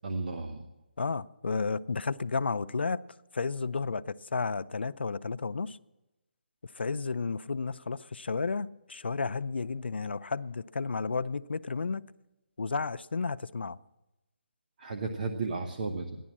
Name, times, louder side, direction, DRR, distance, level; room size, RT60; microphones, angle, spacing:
voice 1, 0.0-0.7 14.8-16.2, right 3 dB, 50° right, 1.1 m, -34 dB
voice 2, 1.0-3.0 3.3-5.8 6.7-12.1 12.6-13.8, left 4 dB, 85° left, 0.5 m, -32 dB
15.0 x 11.0 x 7.3 m
hypercardioid pair, 160°, 6 cm